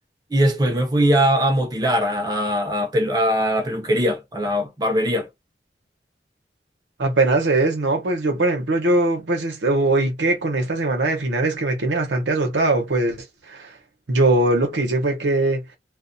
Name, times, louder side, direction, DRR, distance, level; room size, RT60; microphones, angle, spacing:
voice 1, 0.3-5.3, equal, 20° right, 0.6 m, -21 dB
voice 2, 7.0-13.2 13.5-13.7 14.1-15.6, right 2 dB, 90° right, 0.8 m, -21 dB
2.3 x 2.2 x 2.6 m
head